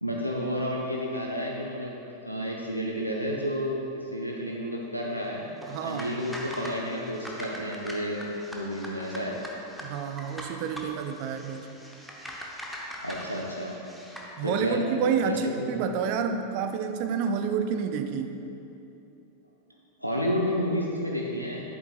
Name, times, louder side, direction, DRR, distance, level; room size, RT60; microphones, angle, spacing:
voice 1, 0.0-1.9 2.2-5.5 5.8-9.4 13.0-13.8 14.4-15.8 20.0-21.6, equal, 90° left, -2 dB, 0.5 m, -31 dB
sound 1, 5.6-14.3, equal, ahead, 0.8 m, -41 dB
voice 2, 5.7-6.1 9.8-11.7 14.4-18.4, right 6 dB, 45° right, 7 dB, 0.4 m, -29 dB
8.0 x 7.0 x 2.4 m, 2.9 s
figure-of-eight pair, 90°, 0 cm